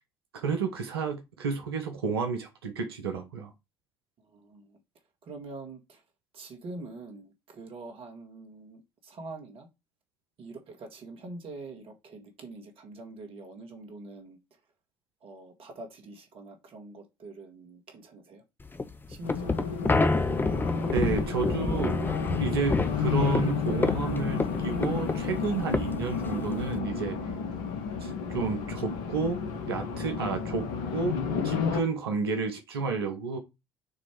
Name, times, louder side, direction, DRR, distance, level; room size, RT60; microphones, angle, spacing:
voice 1, 0.3-3.5 20.9-22.0 22.4-27.2 28.0-29.4 29.7-31.2 31.4-33.4, right 4 dB, 80° right, 0.9 m, -31 dB
voice 2, 4.2-4.8 5.2-6.0 6.3-9.7 10.4-14.4 15.2-18.4 19.1-19.8, right 2 dB, 45° right, 1.9 m, -44 dB
sound 1, 18.7-26.8, left 3 dB, 15° left, 0.7 m, -29 dB
Race car auto racing, 19.2-31.8, left 6 dB, 65° left, 1.0 m, -32 dB
6.6 x 3.1 x 4.6 m
figure-of-eight pair, 55°, 13 cm